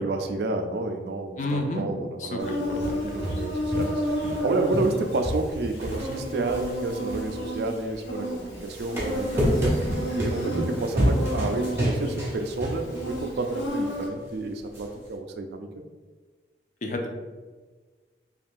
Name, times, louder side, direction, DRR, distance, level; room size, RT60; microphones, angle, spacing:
voice 1, 0.0-2.6 3.0-9.8 10.1-15.7, right 2 dB, 65° right, 6 dB, 0.3 m, -30 dB
voice 2, 1.4-1.8 2.2-3.0 16.8-17.1, left 2 dB, 40° left, 3 dB, 0.3 m, -30 dB
Insect, 2.4-14.1, equal, 80° left, 0.9 m, -32 dB
sound 1, 2.8-4.5 4.7-7.8 8.5-13.2 13.6-13.7 14.7-14.8, equal, 15° right, 0.5 m, -29 dB
2.5 x 2.3 x 3.5 m, 1.4 s
head